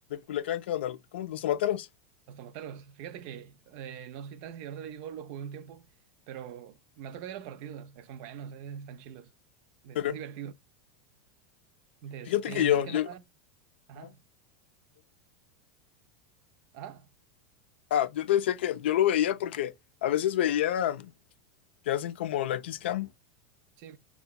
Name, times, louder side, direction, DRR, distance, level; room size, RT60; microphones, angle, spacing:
voice 1, 0.1-1.9 9.9-10.2 12.3-13.1 14.0-14.1 17.9-19.7 20.0-21.1 21.9-23.1, left 11 dB, 80° left, 0.4 m, -28 dB
voice 2, 2.3-5.9 6.3-9.3 9.8-10.5 12.0-13.2 13.9-14.2 16.7-17.1 23.8-24.0, right 8 dB, 60° right, 0.4 m, -42 dB
2.7 x 2.2 x 2.2 m
supercardioid pair, 120°, 6 cm